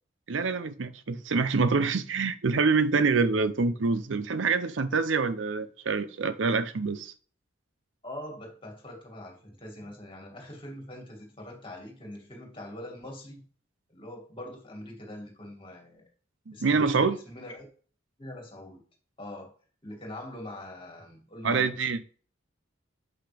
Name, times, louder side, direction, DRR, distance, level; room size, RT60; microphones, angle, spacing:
voice 1, 0.3-7.1 16.5-17.2 21.4-22.2, right 4 dB, 80° right, 0.6 m, -26 dB
voice 2, 8.0-13.5 13.9-16.1 16.5-17.7 18.2-18.8 19.2-19.5 19.8-21.7, left 1 dB, 30° left, 2.3 m, -43 dB
7.9 x 5.8 x 3.4 m
head